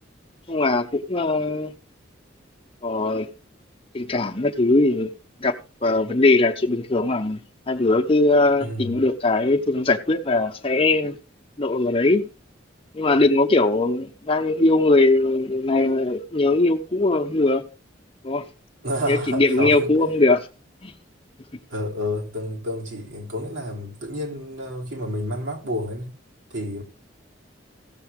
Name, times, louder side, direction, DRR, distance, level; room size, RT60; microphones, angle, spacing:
voice 1, 0.5-1.7 2.8-3.3 3.9-5.1 5.4-5.5 5.8-7.4 7.7-11.2 11.6-12.3 12.9-17.6 18.2-18.5 19.1-20.5 20.8-20.9, left 2 dB, 30° left, 0.8 m, -20 dB
voice 2, 8.6-9.0 18.8-19.9 21.7-26.1 26.5-26.8, equal, 80° right, 3.3 m, -30 dB
16.5 x 6.9 x 3.6 m
head